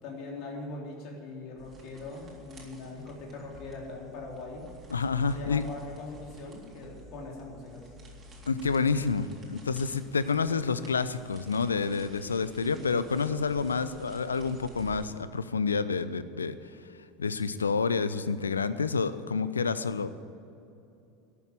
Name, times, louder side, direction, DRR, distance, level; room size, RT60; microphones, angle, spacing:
voice 1, 0.0-4.7 5.2-7.9, left 3 dB, 50° left, -1 dB, 3.6 m, -41 dB
sound 1, 1.6-15.1, right 1 dB, 30° right, 3.7 m, -51 dB
voice 2, 4.9-5.6 8.5-16.6 17.2-20.2, left 5 dB, 85° left, 14 dB, 0.5 m, -29 dB
12.5 x 8.4 x 9.8 m, 2.7 s
figure-of-eight pair, 80°, 0 cm